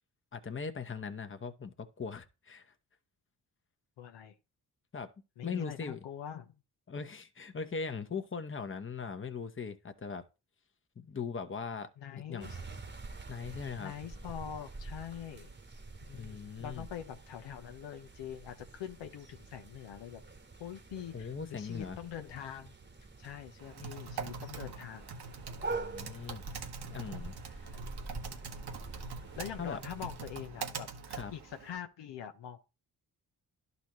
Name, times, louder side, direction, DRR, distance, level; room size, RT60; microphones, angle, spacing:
voice 1, 0.3-2.7 4.9-5.1 5.4-6.0 6.9-10.2 11.0-11.9 12.3-12.6 13.3-13.9 16.1-16.9 21.1-22.0 25.7-26.4 26.8-27.7 29.6-29.8 31.1-31.3, left 5 dB, 30° left, 1.0 m, -40 dB
voice 2, 4.0-4.3 5.4-6.6 12.0-12.6 13.8-15.5 16.0-20.2 20.6-22.8 23.2-25.2 29.4-30.9 31.3-32.6, left 9 dB, 80° left, 0.9 m, -44 dB
sound 1, 12.4-30.3, right 3 dB, 25° right, 1.2 m, -46 dB
Typing, 23.6-31.8, right 5 dB, 65° right, 1.3 m, -44 dB
11.5 x 4.1 x 3.0 m
supercardioid pair, 50°, 43 cm